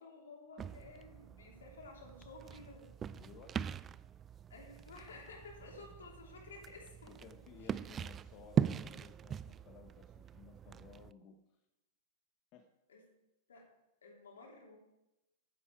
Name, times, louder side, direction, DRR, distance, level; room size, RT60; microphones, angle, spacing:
voice 1, 0.0-2.9 4.5-7.1 7.6-7.8 12.9-13.0 13.5-13.7 14.0-14.8, left 3 dB, 75° left, 0 dB, 3.1 m, -53 dB
sound 1, 0.6-11.1, right 8 dB, 25° right, 0.4 m, -41 dB
voice 2, 3.0-3.7 7.1-11.6 12.5-12.7, left 6 dB, 40° left, 5 dB, 1.1 m, -57 dB
11.0 x 10.0 x 4.7 m, 0.94 s
figure-of-eight pair, 105°, 0 cm